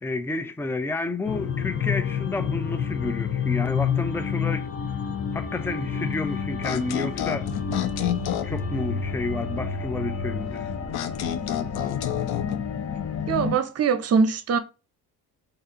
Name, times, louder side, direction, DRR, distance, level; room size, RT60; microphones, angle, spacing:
voice 1, 0.0-4.7 5.3-7.5 8.4-10.7, left 2 dB, 5° left, 0.4 m, -30 dB
sound 1, 1.2-13.6, left 6 dB, 35° left, 0.7 m, -29 dB
sound 2, 6.6-8.6 10.9-12.6, left 11 dB, 70° left, 0.6 m, -29 dB
voice 2, 13.3-14.6, right 5 dB, 40° right, 0.7 m, -22 dB
4.1 x 2.6 x 2.5 m
cardioid pair, 80°, 39 cm